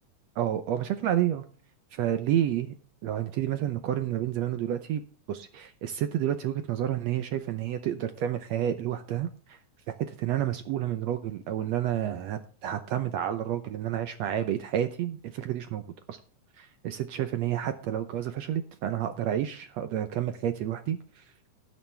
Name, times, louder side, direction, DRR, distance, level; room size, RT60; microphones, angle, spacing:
voice 1, 0.4-1.5 2.0-2.7 3.0-5.0 5.3-9.6 10.1-15.8 16.1-16.2 16.6-21.2, right 11 dB, 70° right, 10 dB, 1.7 m, -30 dB
18.5 x 7.3 x 3.4 m, 0.39 s
omnidirectional pair, 3.6 m